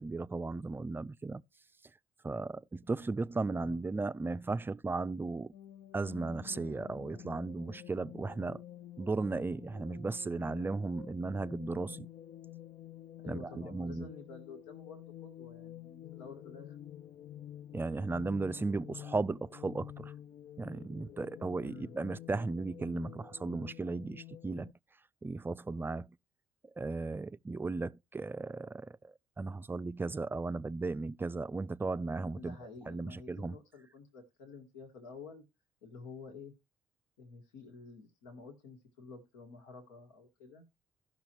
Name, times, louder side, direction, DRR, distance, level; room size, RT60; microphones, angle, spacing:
voice 1, 0.0-1.4 2.2-5.5 5.9-8.6 9.0-12.1 13.3-14.1 17.7-20.1 20.6-24.7 25.2-26.2 26.8-32.6 32.9-33.6, right 3 dB, 20° right, 0.4 m, -36 dB
voice 2, 3.5-4.1 13.2-16.8 21.6-21.9 32.3-35.4 35.8-36.5 37.2-40.6, left 4 dB, 80° left, 1.7 m, -50 dB
sound 1, 5.5-24.7, left 11 dB, 50° left, 0.4 m, -50 dB
16.5 x 6.1 x 2.9 m
hypercardioid pair, 60°, 12 cm